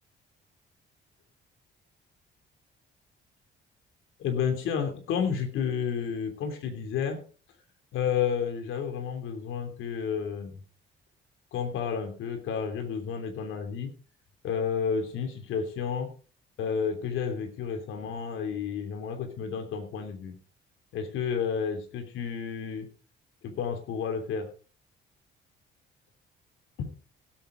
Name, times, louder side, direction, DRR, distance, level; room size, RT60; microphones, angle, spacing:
voice 1, 4.2-7.2 7.9-10.6 11.5-13.9 14.4-16.1 16.6-20.4 20.9-22.9 23.4-24.5 26.8-26.9, left 7 dB, 85° left, 5 dB, 3.1 m, -31 dB
17.0 x 8.9 x 3.9 m, 0.39 s
cardioid pair, 90°, 20 cm